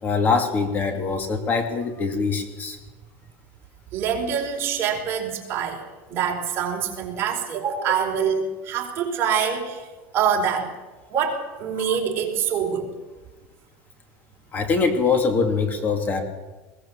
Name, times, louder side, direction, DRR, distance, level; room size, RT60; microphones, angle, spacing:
voice 1, 0.0-2.8 7.8-7.9 11.9-12.0 14.5-16.2, left 4 dB, 25° left, 6 dB, 2.5 m, -23 dB
voice 2, 3.9-9.9 10.1-10.7 11.1-12.9, right 7 dB, 40° right, 1 dB, 4.6 m, -25 dB
21.0 x 18.5 x 7.3 m, 1.2 s
supercardioid pair, 145°, 7 cm